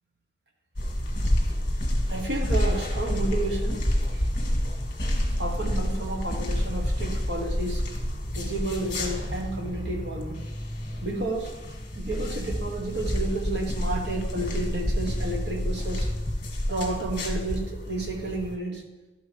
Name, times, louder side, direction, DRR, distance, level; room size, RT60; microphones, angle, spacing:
sound 1, 0.8-18.6, equal, 45° left, 1.9 m, -29 dB
voice 1, 2.1-4.2 5.4-7.8 8.3-10.4 11.0-11.5 11.9-16.1 16.7-18.8, right 2 dB, 65° right, 1 dB, 1.4 m, -31 dB
12.0 x 5.3 x 3.4 m, 1.1 s
head